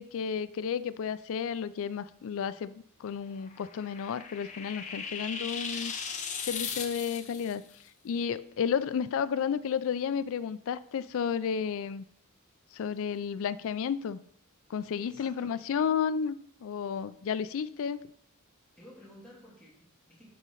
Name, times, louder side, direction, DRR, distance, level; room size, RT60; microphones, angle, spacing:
voice 1, 0.0-5.9 6.4-7.6 8.0-12.0 12.7-14.2 14.7-18.1, left 7 dB, 65° left, 16 dB, 0.3 m, -32 dB
sound 1, 3.4-7.5, left 6 dB, 35° left, 0.8 m, -38 dB
voice 2, 15.0-15.5 15.8-15.9 18.8-20.3, left 1 dB, 5° left, -7 dB, 2.7 m, -53 dB
11.5 x 4.2 x 3.8 m, 0.67 s
head